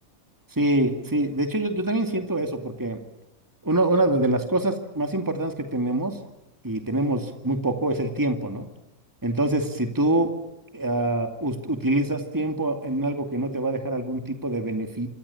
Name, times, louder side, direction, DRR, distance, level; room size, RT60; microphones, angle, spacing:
voice 1, 0.5-3.0 3.6-6.2 6.6-8.7 9.2-10.3 10.7-15.1, right 1 dB, 15° right, 5 dB, 2.6 m, -25 dB
28.0 x 25.0 x 7.2 m, 0.90 s
omnidirectional pair, 1.4 m